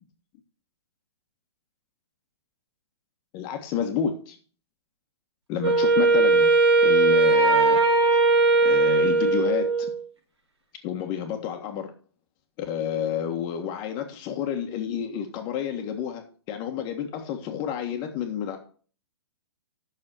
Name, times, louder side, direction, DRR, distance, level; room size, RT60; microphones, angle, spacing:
voice 1, 3.3-4.4 5.5-6.5 6.8-7.8 8.6-9.9 10.8-11.9 12.6-16.2 16.5-18.6, left 8 dB, 30° left, 4 dB, 1.6 m, -30 dB
Wind instrument woodwind instrument, 5.6-10.0, right 3 dB, 85° right, 4.0 m, -19 dB
8.7 x 6.7 x 6.3 m, 0.42 s
hypercardioid pair, 140°, 14 cm